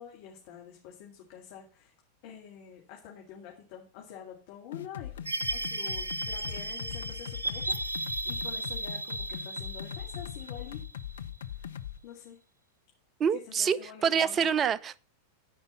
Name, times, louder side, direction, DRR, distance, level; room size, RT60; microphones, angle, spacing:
voice 1, 0.0-1.9 2.2-5.1 5.5-10.8 12.0-12.4 13.6-14.5, left 9 dB, 50° left, 2.3 m, -47 dB
sound 1, 4.7-12.0, left 10 dB, 65° left, 0.6 m, -40 dB
sound 2, 5.3-11.5, right 2 dB, 75° right, 0.8 m, -35 dB
voice 2, 13.2-15.0, right 7 dB, 25° right, 0.5 m, -27 dB
13.5 x 5.3 x 5.7 m
figure-of-eight pair, 90°, 0 cm